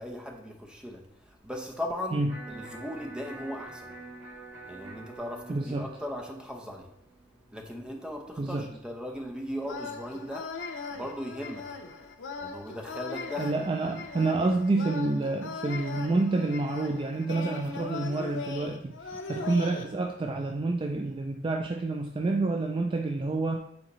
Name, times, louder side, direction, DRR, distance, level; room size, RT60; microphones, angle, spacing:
voice 1, 0.0-3.9 4.7-6.9 7.5-10.5 10.9-11.6 12.4-13.6, equal, 5° right, 1 dB, 0.7 m, -38 dB
Electric guitar, 2.3-8.3, right 2 dB, 75° right, 1.6 m, -47 dB
voice 2, 5.5-5.9 8.4-8.7 13.4-19.0 19.3-23.6, right 2 dB, 30° right, 4 dB, 0.3 m, -28 dB
sound 1, 9.6-19.8, left 4 dB, 90° left, 0.6 m, -39 dB
7.8 x 4.0 x 3.0 m, 0.78 s
head